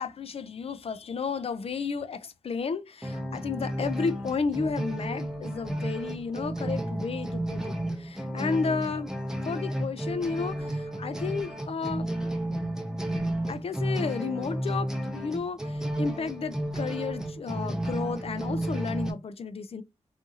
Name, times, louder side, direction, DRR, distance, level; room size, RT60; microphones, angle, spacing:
voice 1, 0.0-9.1 9.5-12.1 13.5-19.8, left 5 dB, 50° left, 0.4 m, -32 dB
sound 1, 3.0-19.1, right 1 dB, 5° right, 0.6 m, -32 dB
2.7 x 2.4 x 2.6 m
cardioid pair, 70°, 13 cm